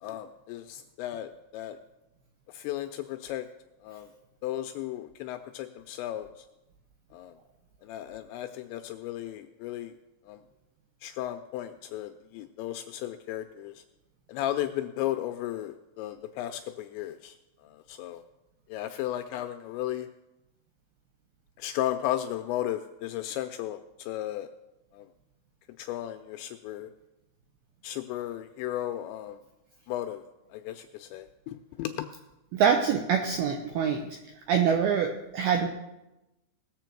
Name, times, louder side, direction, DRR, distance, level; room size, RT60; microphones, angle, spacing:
voice 1, 0.0-1.8 2.5-3.5 3.8-4.1 4.4-6.5 7.1-7.3 7.8-9.9 10.3-10.4 11.0-13.8 14.3-17.4 17.6-18.2 18.7-20.1 21.6-24.5 24.9-25.1 25.8-26.9 27.8-29.4 29.9-30.2 30.5-32.1, left 13 dB, 85° left, 8 dB, 2.6 m, -35 dB
voice 2, 32.5-34.2 34.5-35.7, right 7 dB, 85° right, 4 dB, 2.2 m, -25 dB
19.5 x 7.5 x 4.5 m, 0.97 s
omnidirectional pair, 5.5 m